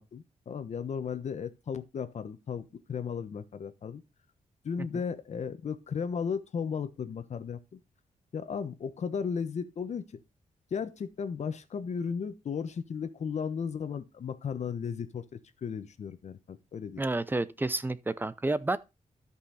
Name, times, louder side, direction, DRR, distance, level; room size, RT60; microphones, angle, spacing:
voice 1, 0.0-4.0 4.6-7.8 8.3-10.2 10.7-17.0, left 6 dB, 55° left, 1.1 m, -35 dB
voice 2, 17.0-18.8, right 2 dB, 15° right, 0.6 m, -30 dB
13.0 x 5.6 x 4.1 m
wide cardioid pair, 125°, 14 cm